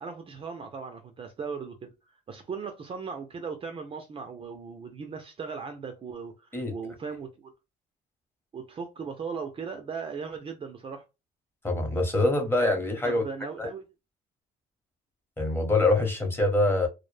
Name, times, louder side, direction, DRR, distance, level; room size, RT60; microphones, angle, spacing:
voice 1, 0.0-1.9 2.3-7.5 8.5-11.1 13.0-13.8, right 5 dB, 30° right, 0.4 m, -38 dB
voice 2, 11.6-13.2 13.6-13.7 15.4-16.9, left 2 dB, 15° left, 0.9 m, -24 dB
2.1 x 2.0 x 3.2 m
cardioid pair, 110°, 17 cm